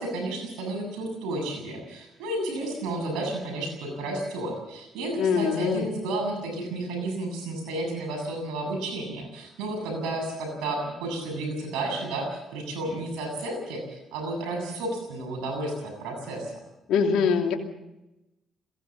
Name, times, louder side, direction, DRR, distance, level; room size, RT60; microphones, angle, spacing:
voice 1, 0.0-16.5, right 2 dB, 85° right, 3 dB, 7.4 m, -32 dB
voice 2, 5.2-5.8 16.9-17.5, left 6 dB, 80° left, 2 dB, 2.8 m, -23 dB
21.5 x 16.0 x 7.4 m, 0.95 s
supercardioid pair, 75°, 0 cm